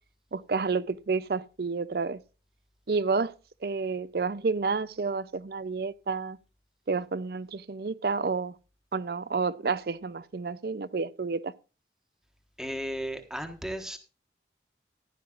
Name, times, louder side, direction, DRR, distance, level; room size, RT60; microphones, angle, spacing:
voice 1, 0.3-2.2 2.9-3.3 3.6-6.4 6.9-8.6 8.9-11.5, right 4 dB, 60° right, 0.5 m, -30 dB
voice 2, 12.6-14.0, equal, 5° right, 1.3 m, -35 dB
15.0 x 11.0 x 2.5 m
head